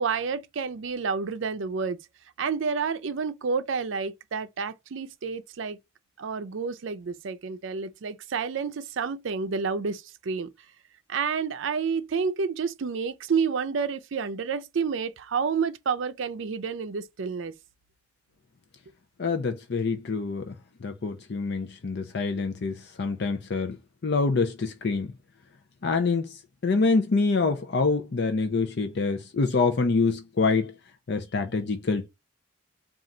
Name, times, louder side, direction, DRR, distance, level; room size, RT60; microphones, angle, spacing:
voice 1, 0.0-2.0 2.4-5.8 6.2-10.5 11.1-17.5, right 5 dB, 70° right, 0.5 m, -29 dB
voice 2, 19.2-20.5 20.8-23.8 24.0-25.1 25.8-30.7 31.1-32.1, left 4 dB, 55° left, 0.5 m, -26 dB
3.8 x 2.4 x 4.1 m
head